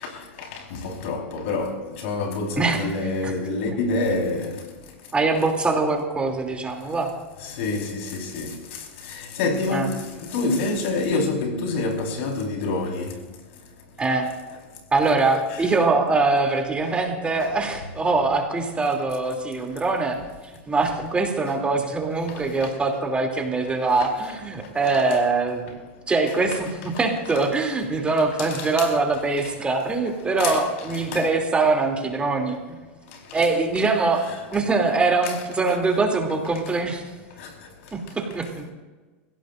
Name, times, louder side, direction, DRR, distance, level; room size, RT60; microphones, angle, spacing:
voice 1, 0.0-4.5 7.4-8.6 9.0-13.2 24.0-24.1 28.4-28.9 30.4-30.6 31.1-31.2 37.4-37.5, left 3 dB, 70° left, 4.6 m, -27 dB
voice 2, 2.6-3.3 5.1-7.1 9.7-9.9 14.0-14.3 14.9-20.2 20.7-25.8 26.1-32.8 33.3-34.2 34.5-37.0 37.9-38.7, right 3 dB, 15° right, 3.0 m, -23 dB
30.0 x 16.5 x 2.6 m
hypercardioid pair, 120°, 7 cm